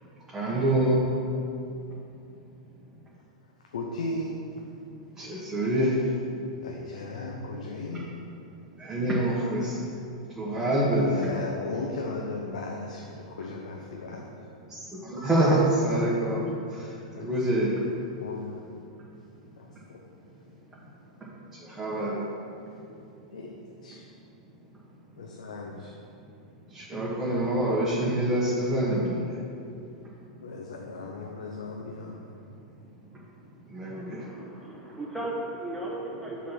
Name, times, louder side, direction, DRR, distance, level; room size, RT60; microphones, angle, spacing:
voice 1, 0.3-1.0 5.2-6.0 8.8-9.8 10.3-11.1 14.7-16.4 16.7-17.7 21.6-22.2 26.7-29.3 33.7-34.2, right 1 dB, 15° right, -8 dB, 1.6 m, -26 dB
voice 2, 3.7-4.4 6.6-8.1 11.0-14.3 17.1-18.6 19.6-20.1 20.5-20.6 23.3-24.1 25.2-26.0 30.4-32.2, left 3 dB, 85° left, -1 dB, 0.8 m, -37 dB
voice 3, 34.2-36.5, right 1 dB, 5° left, -5 dB, 1.7 m, -36 dB
7.2 x 4.1 x 6.1 m, 2.6 s
hypercardioid pair, 115°, 4 cm